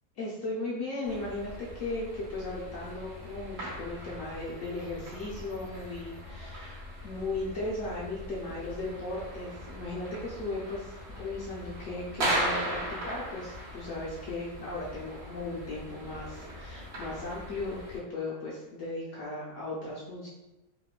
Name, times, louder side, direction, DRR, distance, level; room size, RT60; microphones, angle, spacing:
voice 1, 0.2-20.3, left 2 dB, 70° left, -6 dB, 0.8 m, -37 dB
sound 1, 1.0-18.0, right 1 dB, 55° right, 0.8 m, -38 dB
2.9 x 2.1 x 2.2 m, 1.0 s
omnidirectional pair, 1.7 m